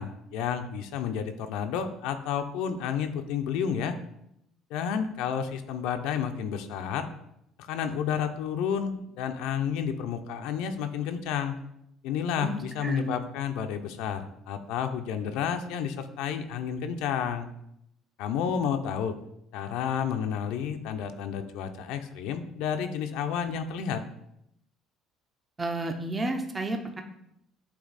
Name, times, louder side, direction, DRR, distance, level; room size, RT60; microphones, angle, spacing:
voice 1, 0.0-4.0 4.7-7.1 7.6-11.6 12.0-17.5 18.2-19.1 19.5-24.0, left 8 dB, 80° left, 7 dB, 0.6 m, -31 dB
voice 2, 12.4-13.1 25.6-27.0, right 2 dB, 20° right, 5 dB, 0.7 m, -31 dB
8.2 x 2.8 x 4.1 m, 0.78 s
supercardioid pair, 100°, 0 cm